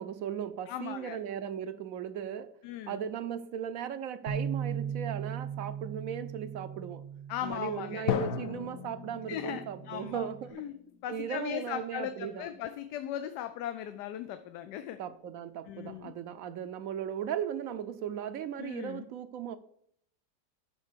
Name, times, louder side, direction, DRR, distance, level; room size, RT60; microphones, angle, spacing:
voice 1, 0.0-2.5 2.9-7.0 7.4-10.6 11.1-12.5 15.0-19.6, right 8 dB, 65° right, 0.9 m, -37 dB
voice 2, 0.7-1.2 2.6-3.0 7.3-8.1 9.3-10.3 10.5-15.0 15.7-16.1 18.6-19.1, left 11 dB, 85° left, 1.2 m, -38 dB
Bass guitar, 4.3-10.5, right 7 dB, 35° right, 0.8 m, -39 dB
Drum, 8.1-11.8, left 8 dB, 65° left, 1.1 m, -37 dB
11.5 x 4.3 x 6.7 m
omnidirectional pair, 1.8 m